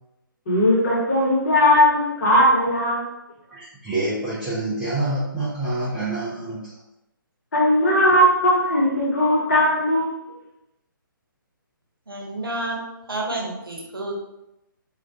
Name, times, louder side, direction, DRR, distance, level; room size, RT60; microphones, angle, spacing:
voice 1, 0.5-3.0 7.5-10.3, left 1 dB, 45° left, -5 dB, 1.0 m, -18 dB
voice 2, 3.5-6.8, right 2 dB, 5° right, -12 dB, 0.4 m, -27 dB
voice 3, 12.1-12.8 13.1-14.1, right 2 dB, 80° right, -2 dB, 0.7 m, -29 dB
2.4 x 2.2 x 2.6 m, 0.88 s
figure-of-eight pair, 135°, 12 cm